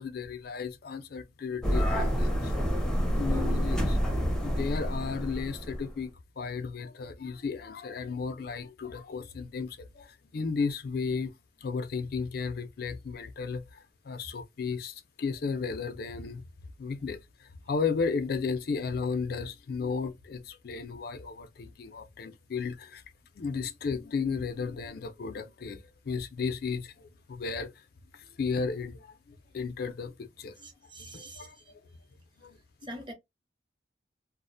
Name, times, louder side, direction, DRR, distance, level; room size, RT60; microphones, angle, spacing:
voice 1, 0.0-2.5 3.1-4.0 4.4-11.3 11.6-16.4 16.8-23.0 23.4-27.7 28.1-30.5 31.0-31.8 32.4-32.6, left 5 dB, 55° left, 0.4 m, -34 dB
sound 1, 1.6-5.9, equal, 5° left, 0.6 m, -28 dB
voice 2, 30.6-31.5 32.9-33.1, right 1 dB, 25° right, 0.8 m, -44 dB
2.4 x 2.1 x 2.5 m
head